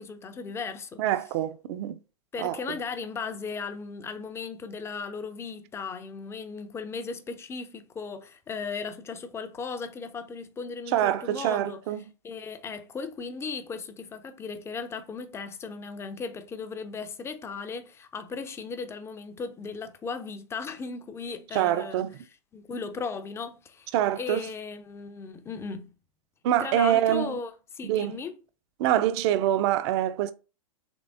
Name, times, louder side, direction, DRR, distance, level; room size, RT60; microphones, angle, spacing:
voice 1, 0.0-1.0 2.3-11.8 12.2-22.0 22.5-23.9 24.2-25.9 26.6-28.4, left 5 dB, 15° left, 0.4 m, -36 dB
voice 2, 1.0-2.0 2.4-2.6 10.9-12.0 21.5-22.1 23.9-24.5 26.4-27.4 27.8-28.2 28.8-30.3, right 12 dB, 50° right, 0.4 m, -25 dB
3.5 x 3.3 x 2.5 m
hypercardioid pair, 110°, 19 cm